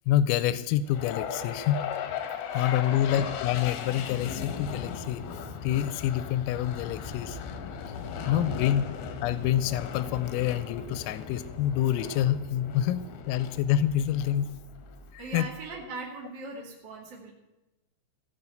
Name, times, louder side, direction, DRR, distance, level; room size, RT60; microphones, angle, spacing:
voice 1, 0.1-1.8 2.5-5.2 5.6-7.4 8.3-8.8 9.2-14.5 15.1-15.5, left 11 dB, 90° left, 14 dB, 3.3 m, -27 dB
sound 1, 0.9-15.1, left 7 dB, 70° left, 2.3 m, -38 dB
voice 2, 2.5-3.3 8.2-8.5 15.2-17.3, right 3 dB, 40° right, -2 dB, 1.6 m, -41 dB
Car / Idling / Accelerating revving vroom, 6.4-15.9, right 3 dB, 85° right, 4.7 m, -52 dB
sound 2, 7.4-11.0, left 5 dB, 50° left, 2.1 m, -49 dB
17.0 x 7.6 x 7.9 m, 1.1 s
omnidirectional pair, 5.9 m